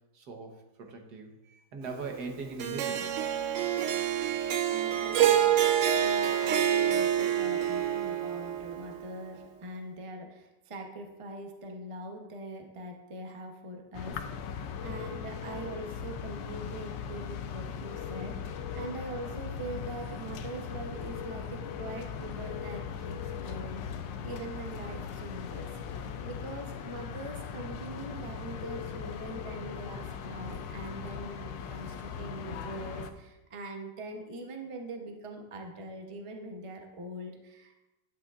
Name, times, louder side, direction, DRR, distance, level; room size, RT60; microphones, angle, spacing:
voice 1, 0.1-3.5, right 3 dB, 65° right, 2 dB, 1.6 m, -41 dB
Harp, 2.6-9.0, right 10 dB, 85° right, 0.7 m, -27 dB
voice 2, 4.7-5.6 5.9-14.6 14.8-37.8, right 2 dB, 40° right, 2 dB, 0.4 m, -43 dB
sound 1, 13.9-33.1, left 7 dB, 85° left, 1.3 m, -39 dB
10.5 x 9.0 x 2.4 m, 1.0 s
omnidirectional pair, 1.9 m